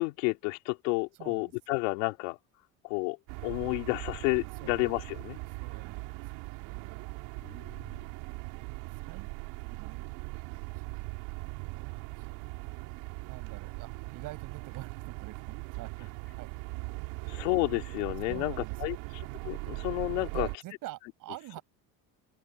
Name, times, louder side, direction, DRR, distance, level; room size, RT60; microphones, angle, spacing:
voice 1, 0.0-2.4 2.8-3.2 3.4-5.4 7.4-8.0 17.3-20.5, left 26 dB, 85° left, 3.0 m, -31 dB
voice 2, 1.2-1.5 4.6-4.7 5.6-7.1 8.4-8.6 8.9-9.3 9.7-10.0 10.9-11.1 11.4-12.4 13.3-16.1 16.3-16.5 17.1-17.5 18.3-19.1 20.3-21.6, right 17 dB, 65° right, 6.9 m, -47 dB
sound 1, 3.3-20.6, right 28 dB, 80° right, 5.6 m, -40 dB
supercardioid pair, 110°, 36 cm